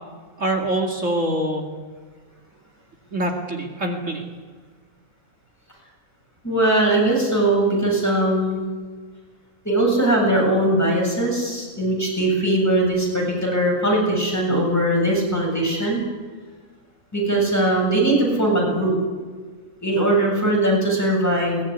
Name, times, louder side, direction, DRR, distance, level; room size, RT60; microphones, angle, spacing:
voice 1, 0.4-1.7 3.1-4.2, right 1 dB, 55° right, 1 dB, 2.6 m, -24 dB
voice 2, 6.4-8.6 9.6-16.0 17.1-18.9 19.8-21.6, right 1 dB, 10° left, -2 dB, 7.3 m, -20 dB
22.5 x 20.0 x 9.7 m, 1.5 s
omnidirectional pair, 1.5 m